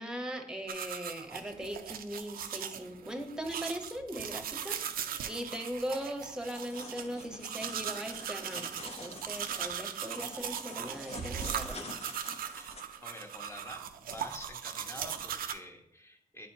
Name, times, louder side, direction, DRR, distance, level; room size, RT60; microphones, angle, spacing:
voice 1, 0.0-11.9, equal, 5° right, 5 dB, 1.1 m, -39 dB
sound 1, 0.7-15.5, right 9 dB, 85° right, 0.4 m, -39 dB
sound 2, 6.5-12.8, left 2 dB, 45° left, 0.9 m, -47 dB
voice 2, 12.5-16.5, left 1 dB, 20° left, 2 dB, 1.2 m, -48 dB
8.9 x 4.2 x 2.8 m, 0.79 s
cardioid pair, 60°, 15 cm